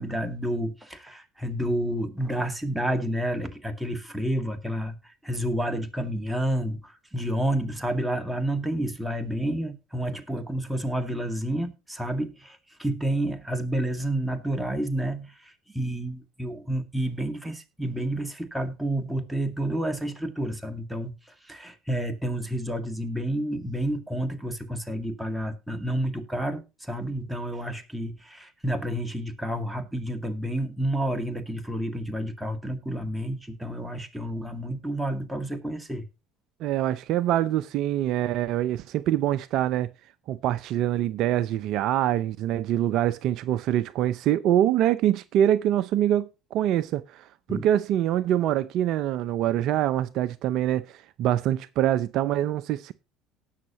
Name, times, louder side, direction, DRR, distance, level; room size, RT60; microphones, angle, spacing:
voice 1, 0.0-36.0 47.5-47.7, right 1 dB, 5° right, 2.1 m, -30 dB
voice 2, 36.6-39.9 40.3-52.9, right 12 dB, 60° right, 0.5 m, -25 dB
18.0 x 6.5 x 2.9 m
hypercardioid pair, 70°, 0 cm